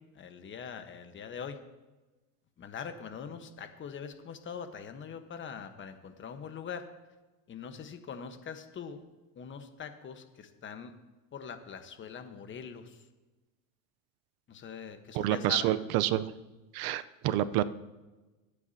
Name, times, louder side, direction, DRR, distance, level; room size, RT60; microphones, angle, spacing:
voice 1, 0.1-1.6 2.6-6.9 7.5-9.0 9.4-10.9 11.3-13.0 14.5-15.7, left 7 dB, 25° left, 8 dB, 1.2 m, -42 dB
voice 2, 15.1-16.3 16.7-17.6, right 13 dB, 55° right, 14 dB, 0.7 m, -28 dB
25.0 x 8.4 x 2.8 m, 1.2 s
supercardioid pair, 120°, 45 cm